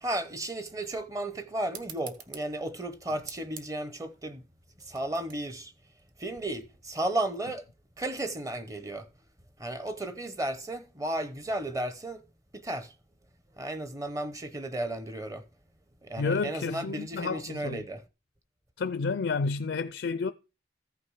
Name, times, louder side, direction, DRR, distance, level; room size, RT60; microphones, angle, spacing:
voice 1, 0.0-4.4 4.8-5.7 6.2-7.6 8.0-9.1 9.6-12.2 12.5-12.9 13.6-15.5 16.0-18.0, right 1 dB, 20° right, 0.8 m, -34 dB
sound 1, 1.7-6.8, right 7 dB, 50° right, 1.2 m, -49 dB
voice 2, 16.2-17.8 18.8-20.3, left 4 dB, 80° left, 0.5 m, -30 dB
14.5 x 5.8 x 4.7 m
head